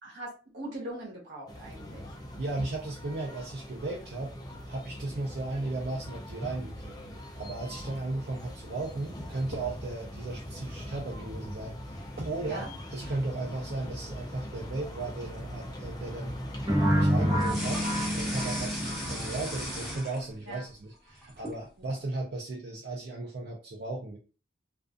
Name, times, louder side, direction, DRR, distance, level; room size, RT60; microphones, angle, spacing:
voice 1, 0.0-2.2 12.4-12.7 20.4-20.7 21.8-22.0, right 1 dB, 70° right, -3 dB, 1.0 m, -41 dB
sound 1, 1.5-20.0, equal, 20° left, 0.4 m, -41 dB
voice 2, 2.4-4.3 4.7-11.8 12.2-16.4 16.9-24.2, right 2 dB, 55° right, -2 dB, 0.5 m, -36 dB
sound 2, 16.7-19.5, equal, 20° right, 0.8 m, -27 dB
sound 3, 17.4-20.6 20.9-21.6, equal, ahead, 1.0 m, -37 dB
2.4 x 2.4 x 2.4 m, 0.35 s
head